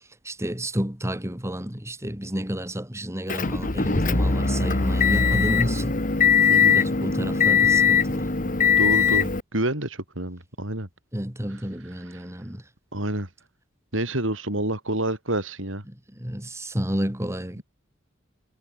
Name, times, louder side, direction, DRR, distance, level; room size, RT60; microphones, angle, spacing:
voice 1, 0.2-6.0 6.7-8.3 11.1-12.6 15.9-17.6, equal, 15° right, 2.6 m, -30 dB
Motor vehicle (road) / Engine, 3.3-9.4, left 6 dB, 45° left, 1.7 m, -21 dB
voice 2, 6.5-6.8 8.8-10.9 12.1-12.2 12.9-13.3 13.9-15.8 17.6-17.7, right 1 dB, 90° right, 7.8 m, -28 dB
head